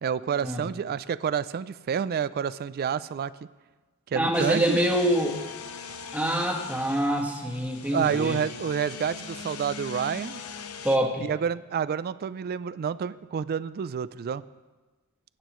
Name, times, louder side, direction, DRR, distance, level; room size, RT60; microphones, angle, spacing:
voice 1, 0.0-3.3 4.1-4.8 7.9-10.4 11.2-14.4, right 7 dB, 45° right, 17 dB, 0.3 m, -29 dB
voice 2, 4.1-5.4 6.1-8.4 10.8-11.3, equal, 5° right, 1 dB, 1.4 m, -25 dB
sound 1, 4.3-11.0, left 5 dB, 75° left, 0.8 m, -40 dB
20.0 x 9.4 x 3.1 m, 1.3 s
head